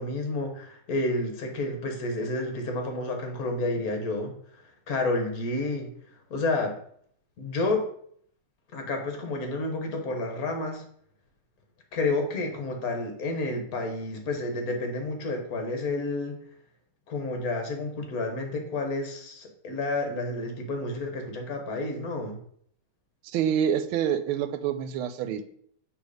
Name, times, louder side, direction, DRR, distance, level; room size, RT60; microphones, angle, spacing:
voice 1, 0.0-4.3 4.9-5.9 6.3-6.8 7.4-7.9 8.7-10.8 11.9-16.4 17.1-22.4, left 2 dB, 50° left, 3 dB, 1.3 m, -30 dB
voice 2, 23.2-25.4, right 9 dB, 85° right, 10 dB, 1.4 m, -27 dB
6.2 x 3.4 x 4.9 m, 0.64 s
omnidirectional pair, 2.3 m